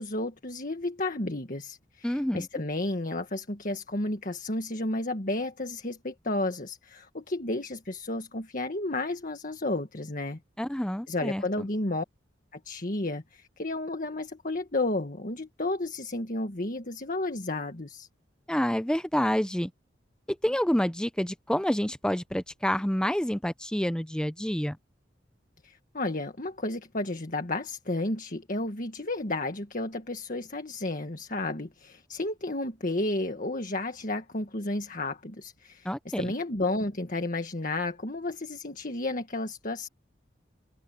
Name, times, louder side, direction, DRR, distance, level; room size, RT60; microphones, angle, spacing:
voice 1, 0.0-10.4 11.1-12.0 12.5-18.1 25.6-35.9 36.2-39.9, left 2 dB, 45° left, 1.7 m, -32 dB
voice 2, 2.0-2.5 10.6-11.7 18.5-19.7 20.3-24.8 35.8-36.3, equal, 5° left, 0.6 m, -28 dB
head